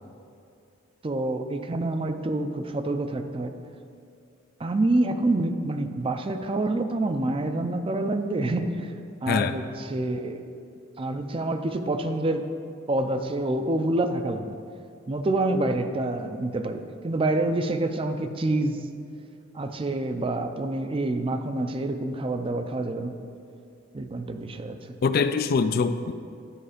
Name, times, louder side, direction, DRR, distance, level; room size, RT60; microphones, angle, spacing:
voice 1, 1.0-3.5 4.6-8.9 9.2-10.4 11.0-12.4 12.9-14.6 15.1-18.8 19.5-23.1 23.9-25.0, right 2 dB, 25° right, 7 dB, 0.4 m, -27 dB
voice 2, 25.0-26.1, left 5 dB, 50° left, 11 dB, 0.3 m, -23 dB
11.5 x 4.7 x 5.0 m, 2.5 s
head